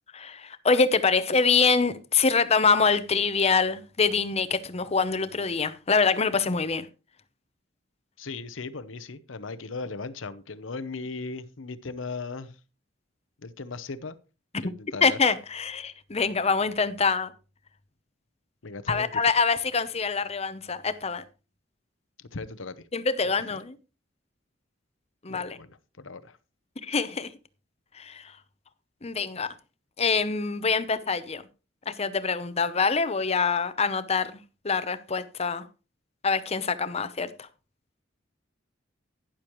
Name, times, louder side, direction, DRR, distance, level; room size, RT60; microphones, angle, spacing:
voice 1, 0.1-6.9 15.0-17.3 18.9-21.2 22.9-23.7 25.2-25.6 26.9-27.3 28.0-28.2 29.0-29.5 30.0-31.4 31.9-34.4 34.6-35.6 36.2-37.3, left 5 dB, 35° left, 0.8 m, -25 dB
voice 2, 8.2-12.6 13.4-14.2 14.6-15.2 18.6-19.1 22.2-22.9 23.2-23.6 25.3-26.4, left 3 dB, 90° left, 0.9 m, -37 dB
12.0 x 10.5 x 3.1 m
head